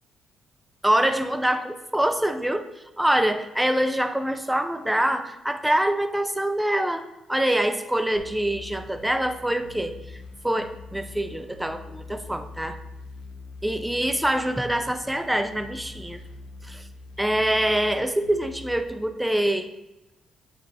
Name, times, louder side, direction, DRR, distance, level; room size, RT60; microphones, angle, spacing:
voice 1, 0.8-2.7 3.0-12.8 13.6-16.2 16.6-16.8 17.2-19.7, right 1 dB, 5° right, 8 dB, 0.5 m, -25 dB
sound 1, 8.2-18.8, left 3 dB, 90° left, 0.9 m, -43 dB
8.5 x 2.9 x 4.9 m, 0.95 s
cardioid pair, 90°, 0 cm